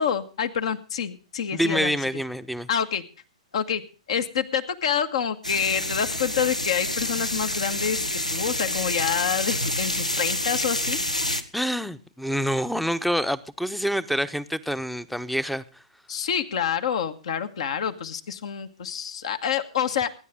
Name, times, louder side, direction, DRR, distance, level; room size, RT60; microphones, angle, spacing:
voice 1, 0.0-2.0 2.7-3.0 3.5-3.8 4.1-8.0 8.3-11.0 16.1-20.1, left 8 dB, 55° left, 8 dB, 1.7 m, -27 dB
voice 2, 1.5-2.7 11.5-15.8, equal, ahead, 16 dB, 0.9 m, -27 dB
sound 1, 5.4-11.4, left 1 dB, 90° left, 1.8 m, -28 dB
24.5 x 10.5 x 3.7 m, 0.36 s
figure-of-eight pair, 115°, 4 cm